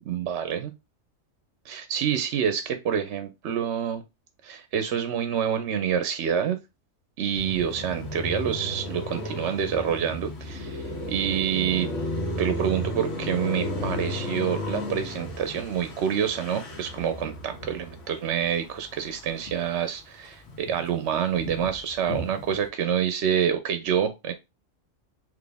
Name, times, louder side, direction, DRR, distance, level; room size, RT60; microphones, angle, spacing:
voice 1, 0.1-0.7 1.7-4.0 4.4-6.6 7.2-11.9 12.4-24.3, right 8 dB, 65° right, 9 dB, 0.8 m, -27 dB
Car passing by, 7.3-19.8 20.2-22.7, left 1 dB, 65° left, 1.6 m, -34 dB
4.1 x 3.1 x 3.4 m, 0.24 s
omnidirectional pair, 1.4 m